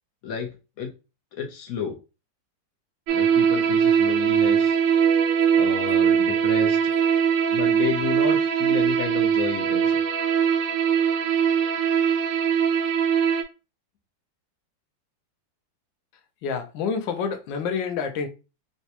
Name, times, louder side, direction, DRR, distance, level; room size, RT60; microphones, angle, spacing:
voice 1, 1.3-2.0 3.1-4.8 5.6-6.8 7.5-10.0, left 6 dB, 60° left, 1.0 m, -31 dB
sound 1, 3.1-13.4, right 7 dB, 85° right, 1.3 m, -21 dB
voice 2, 16.4-18.3, left 6 dB, 80° left, 1.4 m, -28 dB
3.9 x 2.2 x 2.8 m
omnidirectional pair, 2.1 m